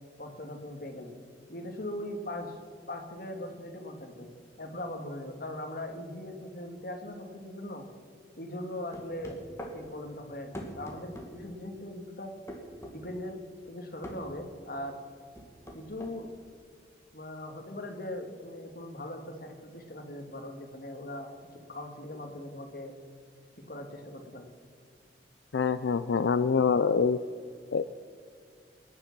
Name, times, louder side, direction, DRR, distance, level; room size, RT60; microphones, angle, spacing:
voice 1, 0.2-1.2 1.5-2.6 2.9-4.3 4.6-7.9 8.4-9.4 9.7-12.3 12.9-15.0 15.7-16.3 17.1-21.3 21.7-22.9 23.7-24.5, left 1 dB, 55° left, 4 dB, 2.0 m, -40 dB
sound 1, 8.9-9.8 10.5-11.3 12.5-13.0 14.0-14.2 15.4-16.2, equal, 15° left, 2.1 m, -41 dB
voice 2, 25.5-27.2 27.7-27.8, left 5 dB, 85° left, 12 dB, 0.4 m, -25 dB
21.0 x 10.0 x 6.0 m, 2.2 s
head